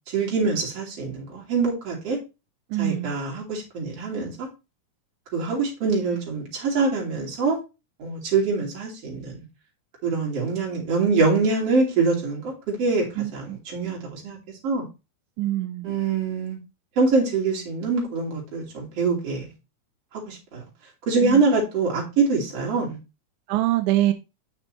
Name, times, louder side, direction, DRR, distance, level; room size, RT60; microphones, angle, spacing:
voice 1, 0.1-2.2 2.8-4.5 5.3-7.6 8.0-9.4 10.0-13.1 13.3-13.5 13.7-14.4 14.6-14.8 15.8-16.6 17.0-19.4 20.3-20.6 21.1-23.0, right 4 dB, 55° right, -3 dB, 3.8 m, -24 dB
voice 2, 2.7-3.1 13.2-13.6 15.4-15.9 21.2-21.4 23.5-24.1, right 14 dB, 90° right, 9 dB, 2.1 m, -24 dB
9.0 x 6.1 x 3.2 m, 0.27 s
omnidirectional pair, 3.4 m